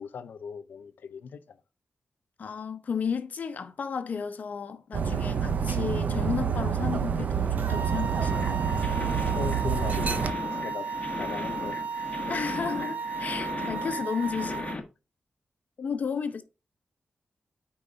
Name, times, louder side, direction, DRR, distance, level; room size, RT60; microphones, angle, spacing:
voice 1, 0.0-1.4 9.3-10.9 11.2-11.8 12.2-12.3, left 6 dB, 85° left, 0.6 m, -38 dB
voice 2, 2.4-8.8 12.3-14.7 15.8-16.4, left 6 dB, 60° left, 0.9 m, -33 dB
Dog, 4.9-10.3, right 7 dB, 55° right, 0.6 m, -28 dB
sound 1, 7.6-14.8, right 5 dB, 75° right, 1.5 m, -34 dB
sound 2, 8.2-14.8, left 3 dB, 35° left, 1.4 m, -37 dB
9.4 x 4.0 x 5.1 m
wide cardioid pair, 160°, 3 cm